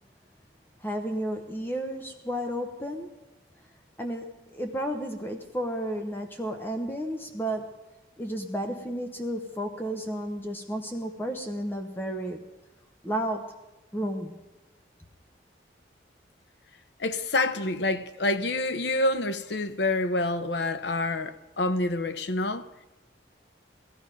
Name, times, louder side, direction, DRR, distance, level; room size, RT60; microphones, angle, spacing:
voice 1, 0.8-3.1 4.0-7.8 8.2-12.5 13.0-13.5 13.9-14.4, equal, 10° left, 0.8 m, -32 dB
voice 2, 17.0-22.8, left 2 dB, 70° left, 0.8 m, -27 dB
17.0 x 14.0 x 5.2 m
head